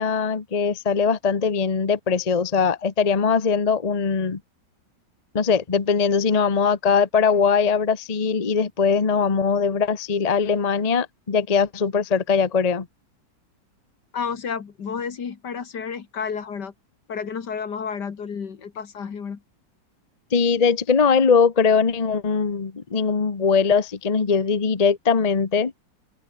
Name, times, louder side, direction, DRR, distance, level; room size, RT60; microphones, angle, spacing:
voice 1, 0.0-4.4 5.3-12.9 20.3-25.7, left 5 dB, 25° left, 1.0 m, -21 dB
voice 2, 14.1-16.7 17.1-19.4, left 6 dB, 70° left, 2.5 m, -31 dB
omnidirectional pair, 1.9 m